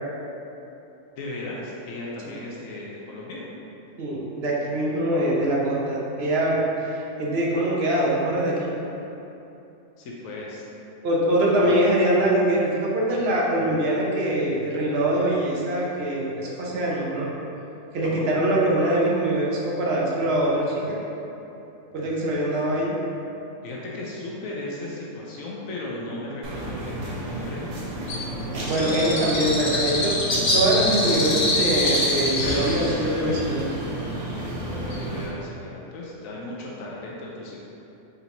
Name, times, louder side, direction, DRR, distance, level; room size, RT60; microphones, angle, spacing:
voice 1, 1.1-3.4 10.0-10.6 11.6-11.9 18.0-18.3 23.6-27.7 28.8-29.8 34.9-37.6, left 2 dB, 85° left, -4 dB, 1.0 m, -36 dB
voice 2, 4.0-6.6 6.8-8.8 11.0-17.3 17.9-21.0 21.9-23.0 28.7-30.2 30.5-33.7, right 1 dB, 55° right, -4 dB, 0.9 m, -23 dB
sound 1, 26.4-35.3, right 1 dB, 90° right, 1.2 m, -32 dB
Bird, 28.1-35.3, left 1 dB, 45° left, 0.6 m, -26 dB
4.3 x 3.9 x 2.6 m, 3.0 s
omnidirectional pair, 1.4 m